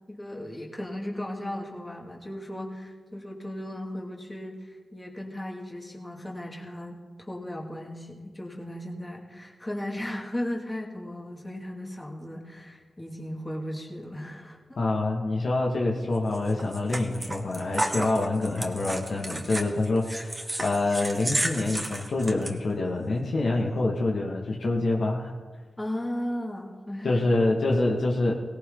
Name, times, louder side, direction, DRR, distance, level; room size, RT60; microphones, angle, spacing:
voice 1, 0.1-14.8 25.8-27.4, left 1 dB, 15° left, 0 dB, 2.6 m, -36 dB
voice 2, 14.8-25.3 27.0-28.3, left 2 dB, 65° left, -1 dB, 2.1 m, -26 dB
sound 1, 16.3-22.5, right 1 dB, 20° right, 1.8 m, -32 dB
17.5 x 17.5 x 4.0 m, 1.4 s
cardioid pair, 65°, 0 cm